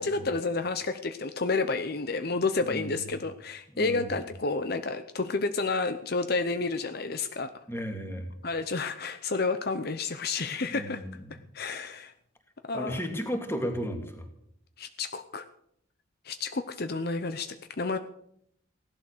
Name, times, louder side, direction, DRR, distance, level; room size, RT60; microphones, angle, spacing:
voice 1, 0.0-7.5 8.4-11.0 11.3-12.1 12.6-13.0 14.8-15.5 16.2-18.0, left 3 dB, 50° left, 9 dB, 0.8 m, -30 dB
voice 2, 2.6-2.9 3.7-4.2 7.7-8.3 10.7-11.1 12.7-14.3, equal, 10° left, 4 dB, 2.4 m, -34 dB
17.0 x 12.0 x 6.7 m, 0.72 s
head